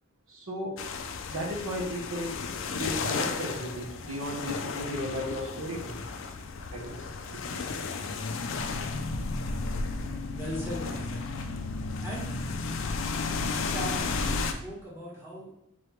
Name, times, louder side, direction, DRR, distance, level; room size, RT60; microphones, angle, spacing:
voice 1, 0.3-0.8 1.3-2.4 2.8-6.1 6.7-7.1, equal, 70° right, -3 dB, 0.9 m, -35 dB
sound 1, 0.8-14.5, left 4 dB, 60° left, 0.4 m, -33 dB
voice 2, 10.3-11.3 12.0-12.3 13.7-14.2 14.6-15.5, equal, 10° right, -7 dB, 1.3 m, -38 dB
3.9 x 3.1 x 3.1 m, 0.77 s
head